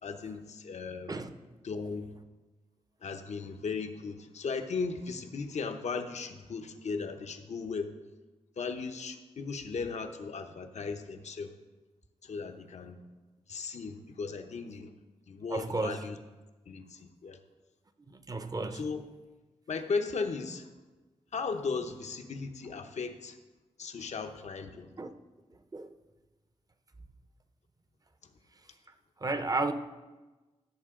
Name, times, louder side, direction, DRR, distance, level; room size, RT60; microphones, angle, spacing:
voice 1, 0.0-1.2 1.6-2.2 3.0-7.9 8.6-11.5 12.2-13.0 13.5-14.9 15.3-16.2 16.7-17.4 18.7-19.0 19.7-20.7 21.3-23.4 23.8-24.9, left 4 dB, 70° left, 0.9 m, -36 dB
voice 2, 15.5-16.0 18.1-18.8 25.0-25.1 25.7-25.9 29.2-29.7, right 3 dB, 30° right, 0.8 m, -32 dB
16.0 x 6.8 x 3.8 m
cardioid pair, 65°, 12 cm